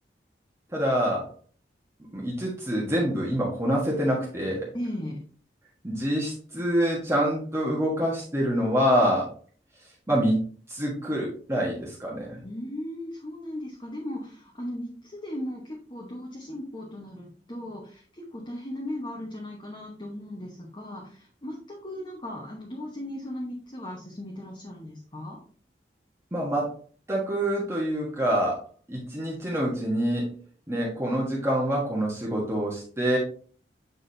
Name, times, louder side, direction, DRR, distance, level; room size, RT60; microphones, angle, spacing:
voice 1, 0.7-1.3 2.1-4.7 5.8-9.3 10.1-10.4 10.7-12.4 26.3-26.7 27.1-28.6 28.9-30.3 30.7-33.2, equal, 15° right, -4 dB, 1.3 m, -26 dB
voice 2, 4.7-5.2 12.4-25.4, left 1 dB, 25° left, -2 dB, 1.1 m, -37 dB
7.9 x 4.9 x 2.7 m, 0.43 s
head